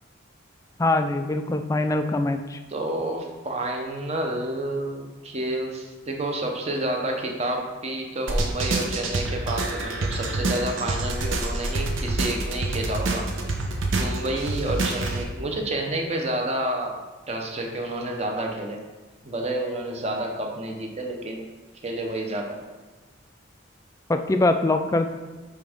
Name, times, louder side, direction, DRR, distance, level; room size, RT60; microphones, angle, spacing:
voice 1, 0.8-2.6 24.1-25.1, left 2 dB, 15° left, 7 dB, 0.3 m, -23 dB
voice 2, 2.7-13.4 13.9-17.0 17.3-18.8 19.2-21.5 21.8-22.6, right 1 dB, 35° right, 2 dB, 0.8 m, -29 dB
sound 1, 8.3-15.2, right 2 dB, 75° right, 0.9 m, -27 dB
9.0 x 3.5 x 3.6 m, 1.2 s
head